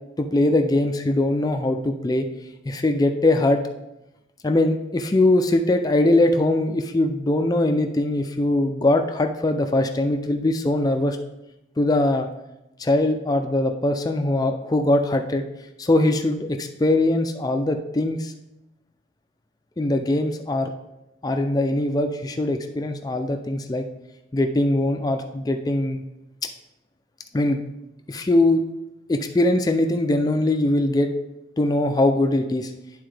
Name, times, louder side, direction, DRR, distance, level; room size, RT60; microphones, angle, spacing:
voice 1, 0.2-2.3 2.7-3.6 4.4-11.2 11.8-12.3 12.8-15.4 15.8-18.3 19.8-20.7 21.2-23.8 24.3-26.0 27.3-27.6 28.1-28.6 29.1-31.1 31.6-32.7, left 1 dB, 20° left, 5 dB, 0.4 m, -21 dB
11.0 x 3.7 x 3.3 m, 0.92 s
head